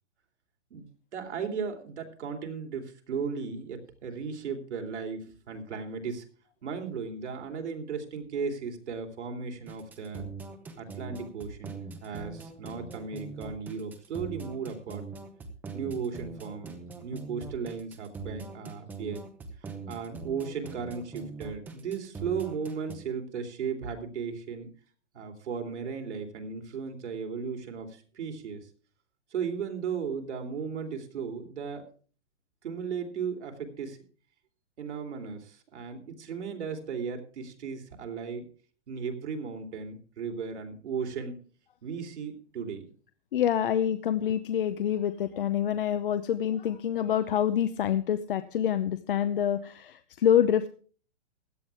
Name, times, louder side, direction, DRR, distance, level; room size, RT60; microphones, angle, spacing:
voice 1, 0.7-6.3 6.6-10.3 10.8-15.1 15.7-16.8 17.0-19.2 19.9-24.7 25.1-28.7 29.3-31.8 32.6-34.0 34.8-38.5 38.9-41.4 41.8-42.9, right 6 dB, 75° right, 4 dB, 3.5 m, -36 dB
sound 1, 9.7-23.0, right 4 dB, 5° right, 0.7 m, -42 dB
voice 2, 43.3-50.7, left 10 dB, 50° left, 11 dB, 0.8 m, -26 dB
16.5 x 11.0 x 3.6 m, 0.41 s
hypercardioid pair, 165°, 35 cm